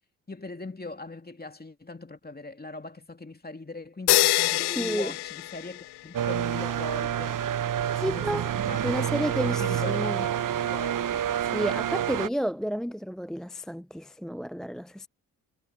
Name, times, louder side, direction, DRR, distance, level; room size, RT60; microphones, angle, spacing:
voice 1, 0.3-7.4 8.1-11.2, left 2 dB, 20° left, 2.7 m, -40 dB
sound 1, 4.1-6.2, left 16 dB, 60° left, 0.6 m, -25 dB
voice 2, 4.6-5.1 7.9-8.5 8.8-10.2 11.5-15.1, equal, ahead, 0.4 m, -31 dB
sound 2, 6.1-12.3, right 10 dB, 45° right, 0.9 m, -28 dB
hypercardioid pair, 40°, 47 cm